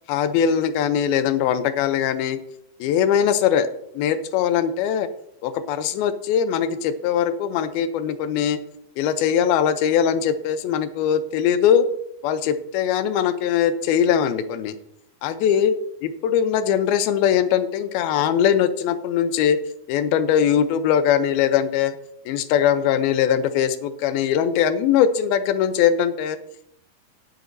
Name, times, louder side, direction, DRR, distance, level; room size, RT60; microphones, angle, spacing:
voice 1, 0.1-2.4 2.8-3.7 3.9-5.1 5.4-8.6 9.0-11.9 12.2-14.8 15.2-15.7 16.0-19.6 19.9-22.0 22.3-26.4, left 8 dB, 85° left, 11 dB, 2.6 m, -21 dB
17.5 x 8.1 x 2.6 m, 0.77 s
omnidirectional pair, 4.3 m